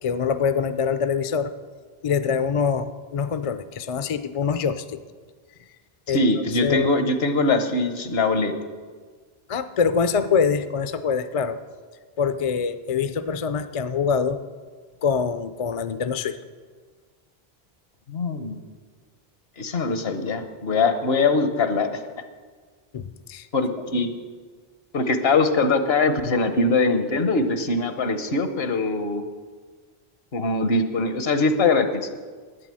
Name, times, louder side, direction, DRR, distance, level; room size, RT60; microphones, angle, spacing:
voice 1, 0.0-1.5 2.0-5.0 6.1-6.9 9.5-11.6 12.2-14.4 15.0-16.4 22.9-23.5, left 6 dB, 45° left, 11 dB, 0.5 m, -24 dB
voice 2, 6.1-8.6 18.1-18.6 19.6-22.0 23.5-24.1 24.9-29.2 30.3-31.9, left 3 dB, 75° left, 8 dB, 1.3 m, -22 dB
11.5 x 9.0 x 7.6 m, 1.5 s
omnidirectional pair, 1.0 m